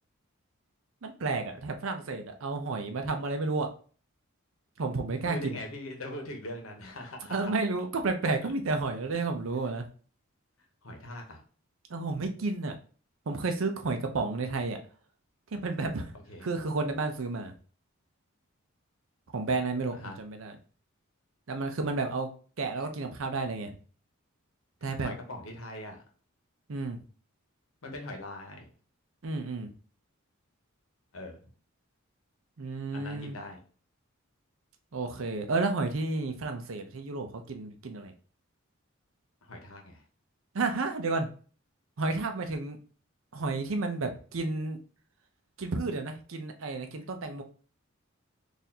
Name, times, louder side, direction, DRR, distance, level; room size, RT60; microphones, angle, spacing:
voice 1, 1.0-3.7 4.8-5.6 7.3-9.8 11.9-12.7 13.3-14.8 15.5-16.1 16.4-17.5 19.3-20.6 21.5-22.3 22.6-23.7 24.8-25.1 26.7-27.0 29.2-29.7 32.6-33.4 34.9-38.1 40.5-41.3 42.0-42.8 43.3-44.8 45.6-47.4, right 3 dB, 65° right, 6 dB, 0.6 m, -31 dB
voice 2, 5.2-7.5 9.5-9.7 10.8-11.4 16.3-16.5 20.0-20.2 25.0-26.0 27.8-28.7 31.1-31.4 32.9-33.6 39.4-40.0, left 1 dB, 80° left, 3 dB, 1.0 m, -41 dB
4.0 x 2.6 x 2.8 m, 0.40 s
head